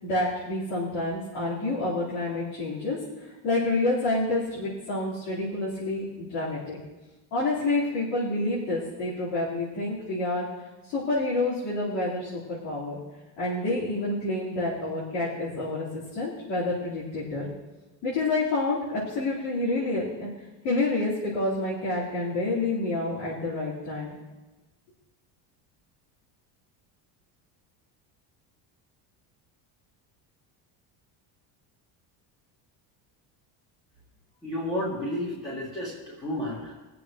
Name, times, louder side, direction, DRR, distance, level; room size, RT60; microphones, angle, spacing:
voice 1, 0.0-3.0 3.4-6.8 7.3-10.5 10.9-13.0 13.4-17.5 18.0-20.3 20.6-24.2, left 2 dB, 70° left, -11 dB, 4.3 m, -28 dB
voice 2, 34.4-36.8, left 1 dB, 10° left, -9 dB, 2.1 m, -32 dB
23.0 x 7.7 x 3.1 m, 1.2 s
cardioid pair, 180°, 45 cm